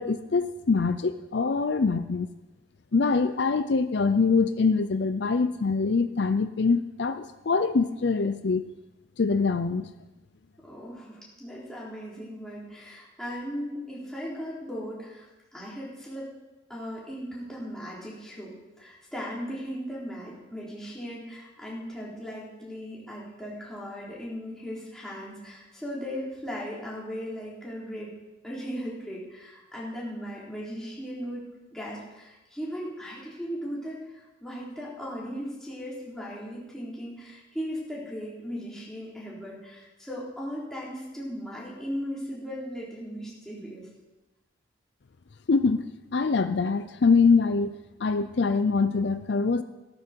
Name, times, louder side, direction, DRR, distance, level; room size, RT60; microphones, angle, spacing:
voice 1, 0.0-2.3 2.9-8.7 9.2-9.9 45.5-45.8 46.1-47.7 48.0-49.6, left 4 dB, 65° left, 11 dB, 0.5 m, -24 dB
voice 2, 10.6-16.3 16.7-28.1 28.4-31.4 31.7-43.9, equal, 5° left, -7 dB, 4.1 m, -37 dB
15.0 x 12.5 x 4.6 m, 1.1 s
head